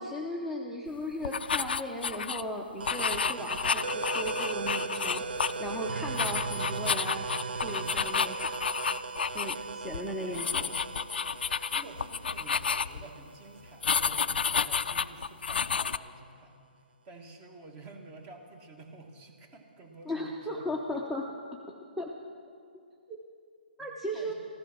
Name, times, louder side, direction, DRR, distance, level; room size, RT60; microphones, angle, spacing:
voice 1, 0.0-7.2 7.5-8.6 9.3-10.7 20.0-21.3 22.0-22.1 23.1-23.2 23.8-24.3, equal, ahead, -1 dB, 0.8 m, -36 dB
sound 1, 1.2-2.4 2.8-5.8 6.1-9.6 9.8-10.0 10.3-13.1 13.8-16.0, left 6 dB, 75° left, 0.4 m, -30 dB
sound 2, 2.8-14.2, right 4 dB, 70° right, 0.6 m, -38 dB
voice 2, 10.2-10.7 11.7-16.6 17.0-20.7 23.8-23.9 24.1-24.3, right 2 dB, 25° right, 4 dB, 1.9 m, -50 dB
14.5 x 13.0 x 5.9 m, 2.3 s
hypercardioid pair, 140°, 5 cm